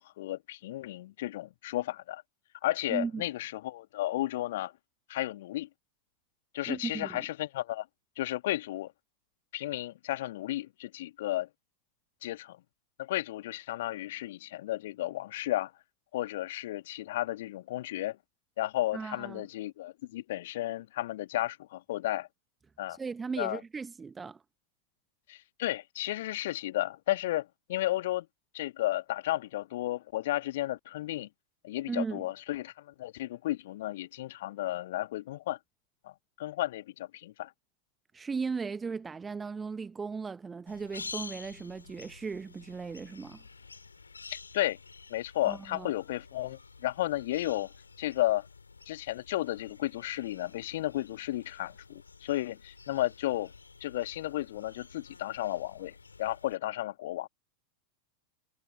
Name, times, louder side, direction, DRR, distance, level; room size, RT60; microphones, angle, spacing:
voice 1, 0.0-2.2 2.6-4.7 5.1-5.7 6.5-7.9 8.2-8.9 9.5-11.5 12.2-12.6 13.0-15.7 16.1-18.2 18.6-22.3 22.8-23.0 23.4-23.6 25.3-28.3 28.5-31.3 31.6-35.6 36.0-36.1 36.4-37.5 44.3-44.8 45.1-47.7 48.0-48.5 48.9-53.5 53.8-57.3, left 15 dB, 55° left, 1.9 m, -33 dB
voice 2, 2.9-3.2 6.7-7.2 18.9-19.4 22.9-24.4 31.9-32.2 38.1-43.4 45.4-45.9, right 5 dB, 15° right, 1.2 m, -37 dB
sound 1, 40.7-56.6, left 4 dB, 75° left, 7.6 m, -50 dB
figure-of-eight pair, 90°, 0 cm